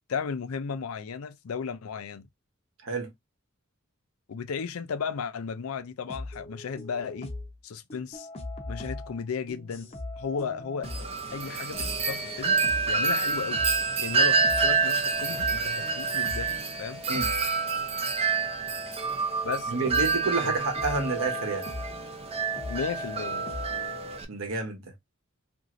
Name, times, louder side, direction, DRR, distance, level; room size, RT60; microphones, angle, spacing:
voice 1, 0.1-2.3 4.3-7.3 7.6-8.3 8.7-9.9 10.2-10.9 11.3-12.6 12.9-13.6 14.0-16.5 16.8-17.0 19.4-20.0 20.4-20.5 22.7-23.4, left 6 dB, 75° left, 0.4 m, -34 dB
sound 1, 6.1-7.6 7.9-16.8 17.1-18.2 19.2-19.3 19.9-20.2 20.5-22.2 22.6-23.9, left 2 dB, 30° left, 0.6 m, -40 dB
Wind chime, 10.8-24.2, right 4 dB, 30° right, 0.5 m, -28 dB
voice 2, 19.7-21.7 24.3-24.9, right 3 dB, 65° right, 0.9 m, -29 dB
2.9 x 2.7 x 2.5 m
head